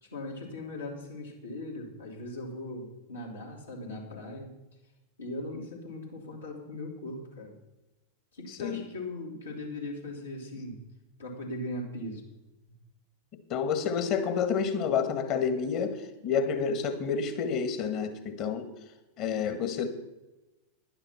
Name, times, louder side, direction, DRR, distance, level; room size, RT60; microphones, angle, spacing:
voice 1, 0.0-4.5 5.2-7.5 8.3-10.8 11.2-12.2, left 1 dB, 75° left, -2 dB, 2.8 m, -39 dB
voice 2, 8.5-8.8 13.5-18.7 19.2-19.9, left 6 dB, 40° left, 9 dB, 1.6 m, -29 dB
11.0 x 10.0 x 5.7 m, 1.0 s
figure-of-eight pair, 90°, 0 cm